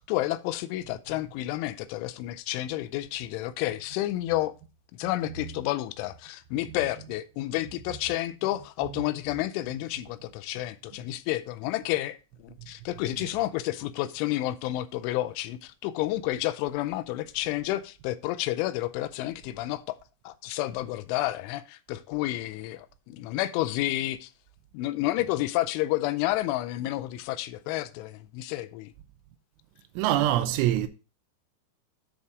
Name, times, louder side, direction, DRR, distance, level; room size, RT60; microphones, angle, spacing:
voice 1, 0.0-4.6 4.9-20.0 20.3-24.3 24.7-28.9, left 15 dB, 90° left, 3.1 m, -30 dB
voice 2, 5.2-5.6 6.7-7.1 7.9-8.0 8.8-9.0 13.1-13.5 25.2-25.3 30.0-30.9, right 13 dB, 85° right, 3.2 m, -28 dB
10.0 x 4.3 x 4.7 m
omnidirectional pair, 5.4 m